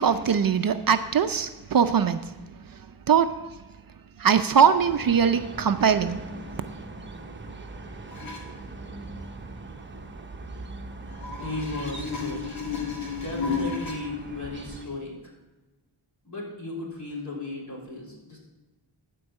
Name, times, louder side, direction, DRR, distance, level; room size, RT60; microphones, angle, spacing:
voice 1, 0.0-2.3 3.1-3.3 4.2-6.2, right 7 dB, 50° right, 9 dB, 0.5 m, -21 dB
sound 1, 4.8-14.8, right 2 dB, 25° right, 0.9 m, -40 dB
sound 2, 8.1-8.4 11.1-13.9 14.8-14.9, left 5 dB, 90° left, 2.5 m, -32 dB
voice 2, 11.4-12.6 13.1-15.3 16.2-18.4, left 2 dB, 40° left, -4 dB, 3.7 m, -35 dB
13.5 x 4.7 x 6.3 m, 1.1 s
wide cardioid pair, 85°, 47 cm